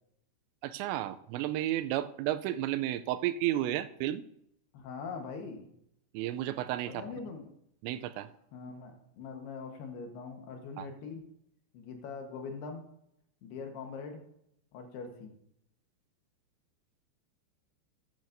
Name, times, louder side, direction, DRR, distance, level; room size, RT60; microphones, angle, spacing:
voice 1, 0.6-4.3 6.1-7.0 7.8-8.3 10.8-10.9, right 13 dB, 90° right, 11 dB, 2.8 m, -32 dB
voice 2, 4.7-5.6 6.9-7.4 8.5-11.2 11.7-12.9 13.4-14.2 14.7-15.3, left 5 dB, 70° left, 4 dB, 3.1 m, -42 dB
13.5 x 10.5 x 2.6 m, 0.76 s
omnidirectional pair, 5.1 m